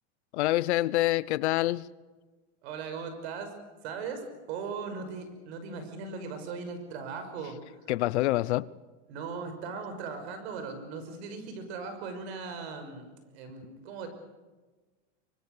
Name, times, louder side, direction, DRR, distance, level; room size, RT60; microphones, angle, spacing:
voice 1, 0.3-1.9 7.9-8.7, left 16 dB, 75° left, 0.9 m, -26 dB
voice 2, 2.6-3.5 3.8-7.6 9.1-14.1, right 5 dB, 65° right, 5.9 m, -38 dB
24.5 x 24.0 x 6.8 m
supercardioid pair, 155°, 34 cm